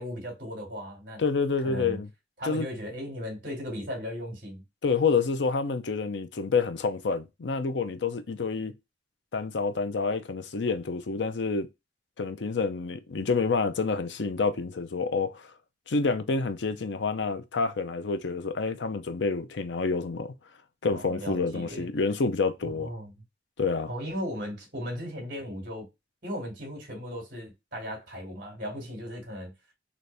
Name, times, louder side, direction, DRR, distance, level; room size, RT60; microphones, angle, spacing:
voice 1, 0.0-1.2 1.6-2.0 2.4-4.6 20.9-21.9 22.7-23.1 23.9-25.9 26.2-29.5, equal, 50° right, 2.1 m, -37 dB
voice 2, 1.2-2.1 2.4-2.7 4.8-8.7 9.3-11.7 12.2-15.5 15.9-20.3 20.8-22.9 23.6-23.9, left 4 dB, 80° left, 0.6 m, -28 dB
4.1 x 2.6 x 3.2 m
head